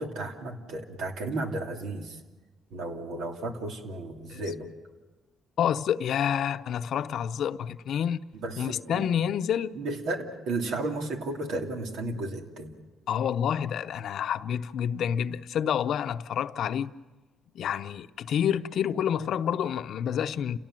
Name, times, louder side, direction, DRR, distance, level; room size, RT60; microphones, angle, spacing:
voice 1, 0.0-2.2 2.7-4.7 8.4-9.1 9.7-12.7, right 2 dB, 85° right, 2.8 m, -33 dB
voice 2, 5.6-8.2 8.6-9.8 13.1-16.9 17.5-20.6, left 9 dB, 70° left, 0.7 m, -28 dB
29.5 x 17.5 x 7.6 m
cardioid pair, 90°, 0 cm